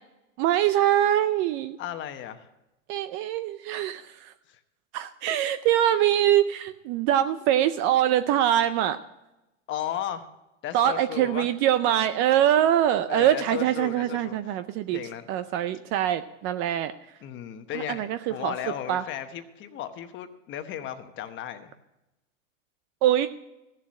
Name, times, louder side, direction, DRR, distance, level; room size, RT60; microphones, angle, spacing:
voice 1, 0.4-1.8 2.9-4.3 4.9-9.0 10.7-15.0 15.3-16.9 17.7-18.5 18.9-19.0 23.0-23.3, right 11 dB, 30° right, 12 dB, 0.4 m, -23 dB
voice 2, 1.8-2.5 4.5-4.6 9.7-10.3 10.6-11.5 13.1-14.4 14.9-15.3 17.2-21.7, left 10 dB, 30° left, 9 dB, 1.1 m, -35 dB
15.0 x 7.4 x 6.3 m, 0.95 s
supercardioid pair, 135°, 39 cm